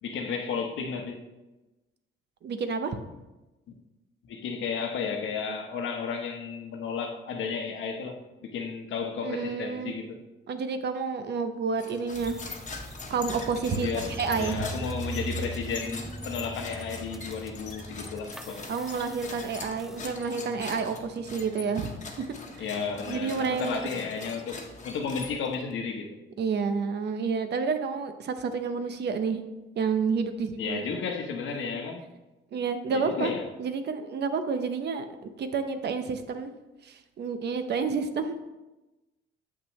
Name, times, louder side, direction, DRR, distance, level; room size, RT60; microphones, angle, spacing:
voice 1, 0.0-1.2 4.3-10.2 13.7-18.7 22.6-26.2 30.6-32.0 32.9-33.5, left 5 dB, 75° left, 4 dB, 1.0 m, -33 dB
voice 2, 2.4-3.0 9.2-9.9 10.5-12.5 13.1-13.9 14.2-14.6 18.7-21.9 22.5-22.7 23.1-23.8 26.4-29.4 29.8-30.8 31.5-31.8 32.5-36.5 36.8-38.4, right 5 dB, 60° right, 9 dB, 0.7 m, -30 dB
sound 1, 11.8-25.7, left 4 dB, 40° left, 1.1 m, -42 dB
sound 2, 12.1-20.1, right 2 dB, ahead, 0.4 m, -40 dB
7.4 x 5.9 x 3.1 m, 1.1 s
cardioid pair, 90°, 20 cm